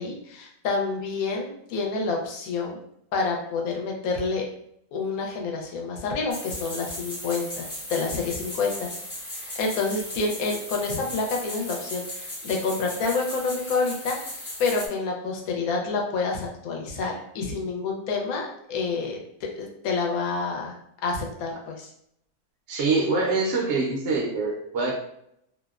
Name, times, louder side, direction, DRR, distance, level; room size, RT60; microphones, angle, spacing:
voice 1, 0.0-2.8 3.1-4.5 4.9-8.9 9.3-14.2 14.6-20.8 21.0-21.9, left 4 dB, 75° left, 0 dB, 1.0 m, -28 dB
sound 1, 6.3-14.9, left 1 dB, 30° left, 0.5 m, -37 dB
voice 2, 22.7-24.9, right 3 dB, 65° right, -1 dB, 0.7 m, -24 dB
2.7 x 2.0 x 2.3 m, 0.73 s
omnidirectional pair, 1.6 m